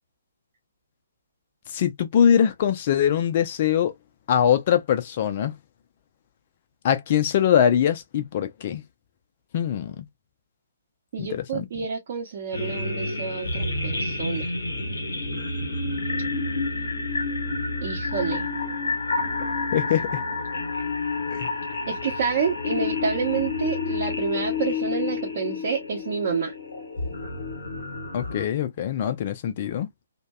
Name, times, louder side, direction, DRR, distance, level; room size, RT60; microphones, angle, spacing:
voice 1, 1.7-3.9 4.3-5.5 6.8-8.8 9.5-10.1 11.2-11.7 19.7-20.2 21.3-21.5 28.1-29.9, left 9 dB, 40° left, 0.4 m, -22 dB
voice 2, 11.1-14.5 17.8-18.5 21.9-26.5, right 6 dB, 45° right, 0.7 m, -28 dB
sound 1, 12.5-28.4, left 3 dB, 65° left, 0.8 m, -29 dB
2.6 x 2.1 x 2.3 m
figure-of-eight pair, 130°, 0 cm